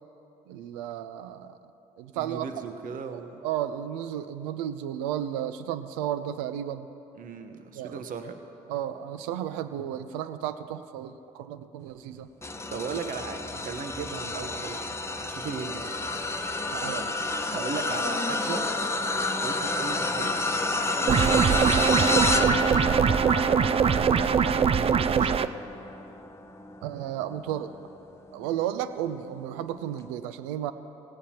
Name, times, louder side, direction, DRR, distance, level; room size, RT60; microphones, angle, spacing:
voice 1, 0.5-1.6 2.0-2.5 3.1-6.9 7.7-8.0 8.7-12.3 16.7-17.3 22.5-22.9 26.8-27.7 28.3-30.7, right 11 dB, 85° right, 12 dB, 0.5 m, -33 dB
voice 2, 2.1-3.4 7.2-8.4 12.7-14.9 15.2-16.0 17.5-18.6 19.4-20.4 21.0-22.1 24.0-24.3 25.1-25.4, right 5 dB, 55° right, 7 dB, 1.0 m, -37 dB
sound 1, 12.4-27.9 28.4-28.7 29.9-30.0, left 2 dB, 15° left, 1.0 m, -30 dB
sound 2, 21.1-25.5, right 7 dB, 35° right, 0.5 m, -22 dB
17.5 x 16.5 x 2.9 m, 2.9 s
hypercardioid pair, 55°, 17 cm